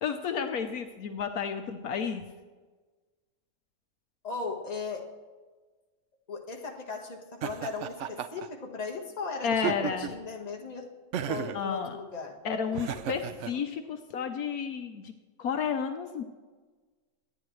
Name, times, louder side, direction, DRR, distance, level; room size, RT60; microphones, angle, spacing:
voice 1, 0.0-2.3 9.4-10.1 11.5-12.0 12.4-15.1 15.4-16.2, left 6 dB, 70° left, 6 dB, 1.2 m, -31 dB
voice 2, 4.2-5.1 6.3-9.5 9.8-10.9 11.3-12.4 12.7-13.6, left 4 dB, 25° left, 1 dB, 1.4 m, -38 dB
Laughter, 7.4-8.5 9.5-10.2 11.1-11.6 12.7-13.5, right 10 dB, 65° right, 0.8 m, -34 dB
25.0 x 9.8 x 3.2 m, 1.4 s
omnidirectional pair, 1.6 m